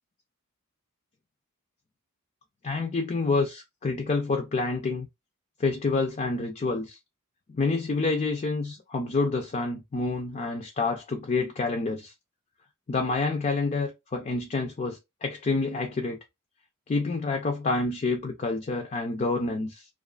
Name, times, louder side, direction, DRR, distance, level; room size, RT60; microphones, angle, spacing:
voice 1, 2.6-5.1 5.6-7.0 7.5-12.1 12.9-16.2 16.9-19.9, left 3 dB, 30° left, 0.4 m, -28 dB
2.4 x 2.3 x 2.3 m
head